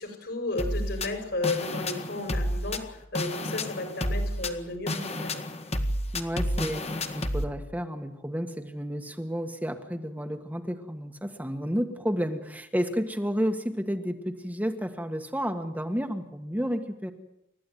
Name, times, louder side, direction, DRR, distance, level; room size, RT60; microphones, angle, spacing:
voice 1, 0.0-5.4, left 2 dB, 60° left, 4 dB, 5.3 m, -33 dB
sound 1, 0.6-7.4, left 1 dB, 30° left, 1.8 m, -30 dB
voice 2, 6.1-17.1, equal, 10° right, 5 dB, 1.6 m, -31 dB
30.0 x 14.0 x 9.4 m, 0.83 s
head